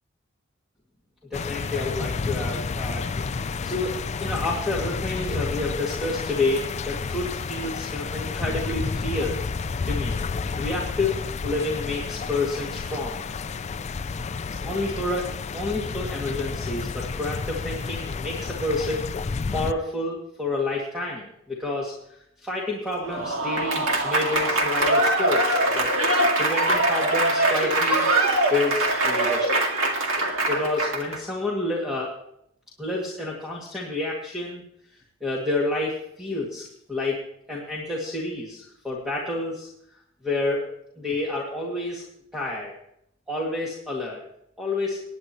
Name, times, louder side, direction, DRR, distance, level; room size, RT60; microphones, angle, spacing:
sound 1, 1.3-19.7, left 4 dB, 30° left, 0.4 m, -31 dB
voice 1, 1.3-3.1 3.4-9.4 9.8-10.2 10.5-13.2 14.6-19.1 19.5-21.9 22.4-25.9 26.4-28.1 28.5-29.7 30.2-32.1 32.8-34.6 35.2-37.2 37.5-39.7 40.2-40.7 41.0-42.0 42.3-42.7 43.3-44.2 44.6-45.0, left 2 dB, ahead, -4 dB, 2.1 m, -29 dB
Applause / Crowd, 23.0-31.2, right 2 dB, 70° right, 2.0 m, -22 dB
20.0 x 10.0 x 3.0 m, 0.75 s
head